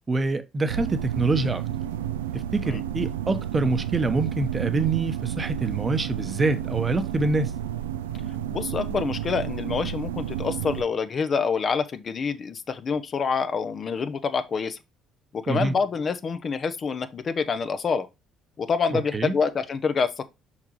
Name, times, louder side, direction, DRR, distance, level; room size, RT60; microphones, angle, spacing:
voice 1, 0.1-1.6 2.3-7.6 15.5-15.7 18.9-19.3, right 3 dB, 30° right, 1.0 m, -25 dB
sound 1, 0.7-10.8, right 10 dB, 80° right, 0.4 m, -31 dB
voice 2, 8.5-14.8 15.3-18.1 18.6-20.2, left 5 dB, 40° left, 0.7 m, -27 dB
5.8 x 5.8 x 3.0 m
figure-of-eight pair, 50°, 0 cm